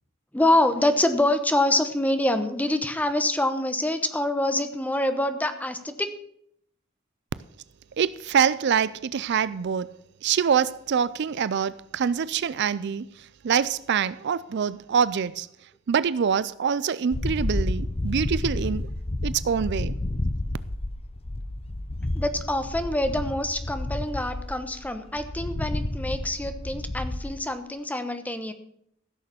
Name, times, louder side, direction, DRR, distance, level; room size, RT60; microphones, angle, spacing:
voice 1, 0.3-6.1 22.1-28.5, left 1 dB, 10° left, 1.0 m, -25 dB
voice 2, 8.0-9.9 10.2-15.5 15.9-18.9 19.2-20.0, right 7 dB, 55° right, 0.4 m, -25 dB
sound 1, 17.1-27.3, left 1 dB, 30° left, 0.8 m, -30 dB
15.5 x 6.6 x 6.9 m
head